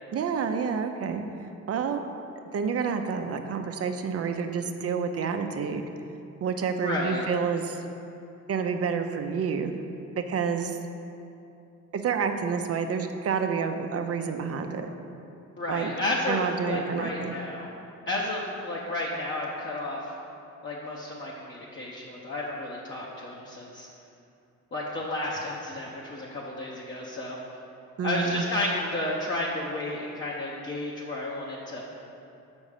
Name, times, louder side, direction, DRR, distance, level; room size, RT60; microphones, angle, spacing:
voice 1, 0.1-1.2 1.7-2.0 2.5-5.8 6.4-7.8 8.5-9.7 10.2-10.8 11.9-14.9 15.7-15.9 16.3-17.3 28.0-28.4, right 6 dB, 50° right, 6 dB, 0.7 m, -29 dB
voice 2, 6.8-7.3 15.6-17.7 18.1-20.1 20.6-23.9 24.7-27.4 28.0-31.8, left 1 dB, 40° left, -5 dB, 1.0 m, -32 dB
6.0 x 5.3 x 6.6 m, 2.7 s
cardioid pair, 90°, 30 cm